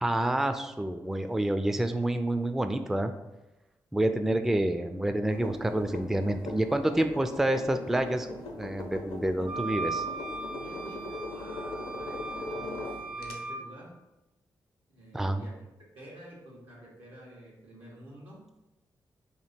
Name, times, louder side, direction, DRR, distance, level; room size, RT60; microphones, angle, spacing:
voice 1, 0.0-3.1 3.9-8.3 8.6-10.1 15.1-15.4, right 1 dB, 5° right, 8 dB, 0.3 m, -28 dB
sound 1, 5.3-13.3, left 2 dB, 80° left, 0.6 m, -40 dB
sound 2, 9.5-13.6, right 3 dB, 60° right, 1.0 m, -38 dB
voice 2, 10.5-14.0 14.9-15.6 15.9-18.4, right 1 dB, 85° right, -4 dB, 1.2 m, -49 dB
2.9 x 2.8 x 4.2 m, 1.0 s
supercardioid pair, 45°, 9 cm